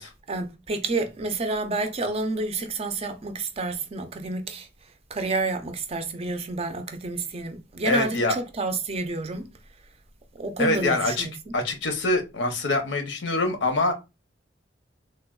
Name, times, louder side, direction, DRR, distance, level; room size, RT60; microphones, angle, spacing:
voice 1, 0.3-4.7 5.1-9.5 10.4-11.3, right 3 dB, 35° right, 0.4 m, -29 dB
voice 2, 7.9-8.4 10.6-11.3 11.5-13.9, left 2 dB, 90° left, 0.7 m, -24 dB
3.3 x 2.2 x 2.3 m
head